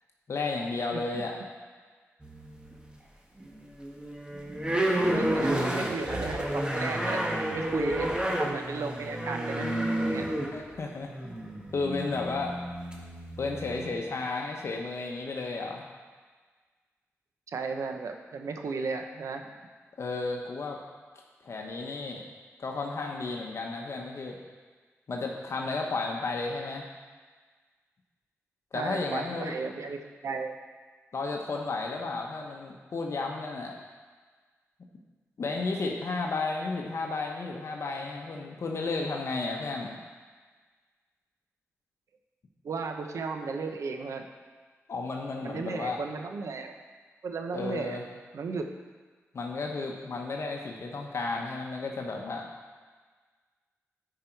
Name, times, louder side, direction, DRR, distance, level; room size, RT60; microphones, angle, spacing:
voice 1, 0.3-1.4 5.4-5.5 10.5-11.1 11.7-12.6 13.4-15.8 20.0-20.8 21.4-22.2 22.6-24.4 25.1-26.9 28.7-29.5 31.1-33.7 35.4-40.0 44.9-46.0 47.5-48.0 49.3-52.4, left 3 dB, 60° left, 1 dB, 1.0 m, -33 dB
sound 1, 2.2-2.9 3.4-13.9, right 1 dB, 15° right, 1.3 m, -31 dB
voice 2, 5.1-9.7 10.0-10.3 17.5-19.5 28.7-30.6 42.6-44.2 45.4-46.8 47.2-48.0 48.3-48.7, right 4 dB, 80° right, 5 dB, 0.8 m, -35 dB
10.0 x 4.9 x 4.5 m, 1.5 s
cardioid pair, 65°, 5 cm